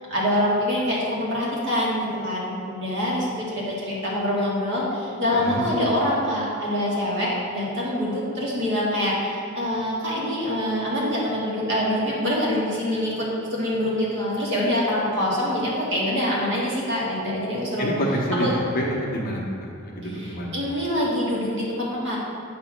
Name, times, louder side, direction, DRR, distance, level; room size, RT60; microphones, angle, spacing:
voice 1, 0.1-17.9 18.4-18.5 20.0-22.2, left 1 dB, 60° right, -5 dB, 1.6 m, -25 dB
voice 2, 17.8-19.4 19.8-20.6, equal, 45° left, -2 dB, 1.0 m, -27 dB
7.9 x 2.9 x 5.9 m, 2.5 s
head